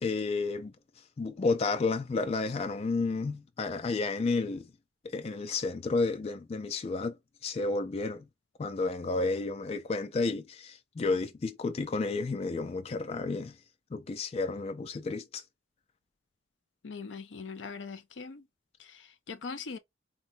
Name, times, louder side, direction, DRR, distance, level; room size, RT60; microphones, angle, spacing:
voice 1, 0.0-0.7 1.2-4.7 5.0-7.2 7.4-8.3 8.6-13.6 13.9-15.4, left 3 dB, 35° left, 0.3 m, -31 dB
voice 2, 16.8-18.4 18.8-19.8, left 5 dB, 80° left, 0.6 m, -41 dB
4.0 x 2.1 x 2.6 m
head